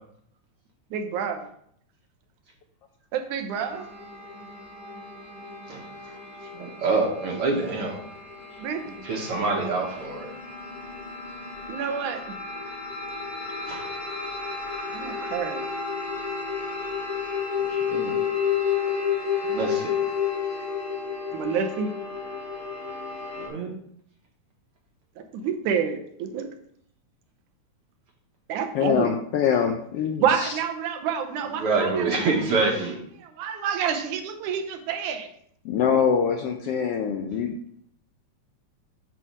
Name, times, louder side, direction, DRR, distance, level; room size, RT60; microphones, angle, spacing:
voice 1, 0.9-1.5 3.1-3.9 8.6-8.8 11.7-12.2 14.9-15.6 21.3-21.9 25.2-26.5 28.5-29.2 30.2-32.3 33.2-35.3, right 7 dB, 90° right, 6 dB, 2.3 m, -28 dB
sound 1, 3.5-23.5, left 6 dB, 65° left, 3.2 m, -32 dB
voice 2, 6.6-8.0 9.0-10.3 13.7-13.8 17.9-18.2 19.5-19.9 23.4-23.7 31.6-33.0, right 3 dB, 60° right, 0 dB, 1.7 m, -26 dB
voice 3, 28.7-30.5 35.6-37.8, left 7 dB, 85° left, 4 dB, 1.3 m, -24 dB
8.6 x 3.5 x 6.0 m, 0.67 s
omnidirectional pair, 3.4 m